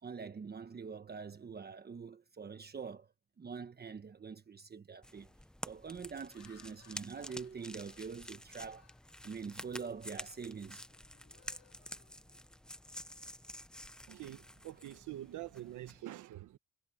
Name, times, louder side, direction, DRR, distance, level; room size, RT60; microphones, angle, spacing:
voice 1, 0.0-3.1 3.4-5.3 5.6-8.9 9.2-10.8, right 5 dB, 30° right, 1.2 m, -45 dB
Laughter, 4.2-4.5 5.0-5.3 6.0-9.8 10.2-10.5 10.8-12.8, left 8 dB, 55° left, 2.9 m, -67 dB
sound 1, 5.0-16.0, left 1 dB, 5° left, 0.8 m, -50 dB
voice 2, 14.1-16.6, right 14 dB, 80° right, 1.4 m, -46 dB
cardioid pair, 90°, 30 cm